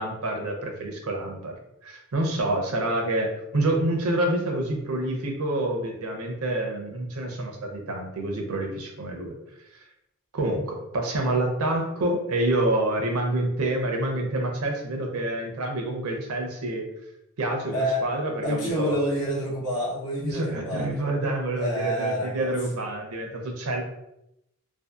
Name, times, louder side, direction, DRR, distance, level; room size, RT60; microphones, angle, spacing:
voice 1, 0.0-9.3 10.3-16.9 17.4-19.0 20.2-23.8, right 1 dB, 75° right, 2 dB, 0.6 m, -27 dB
voice 2, 17.7-18.0 18.4-20.9 21.6-22.5, equal, 85° left, -3 dB, 0.8 m, -28 dB
2.6 x 2.4 x 2.3 m, 0.84 s
head